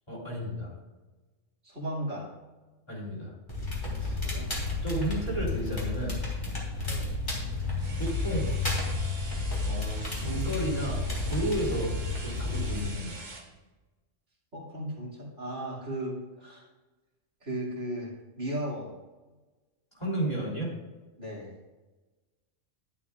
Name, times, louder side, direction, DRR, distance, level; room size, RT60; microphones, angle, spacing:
voice 1, 0.1-0.7 2.9-3.3 4.0-4.2 4.8-6.2 7.5-7.6 7.9-8.5 9.6-11.0 11.3-11.9 12.2-13.2 19.9-20.7, right 1 dB, 20° left, -5 dB, 3.6 m, -33 dB
voice 2, 1.6-2.3 4.0-4.5 6.9-7.1 11.7-11.9 14.5-16.6 17.4-18.9 21.2-21.5, right 1 dB, 70° right, -6 dB, 2.9 m, -36 dB
Crackle, 3.5-12.9, left 3 dB, 40° left, 2.9 m, -31 dB
sound 1, 7.8-13.5, right 2 dB, 40° right, 1.3 m, -45 dB
11.5 x 11.5 x 2.4 m, 1.2 s
omnidirectional pair, 1.3 m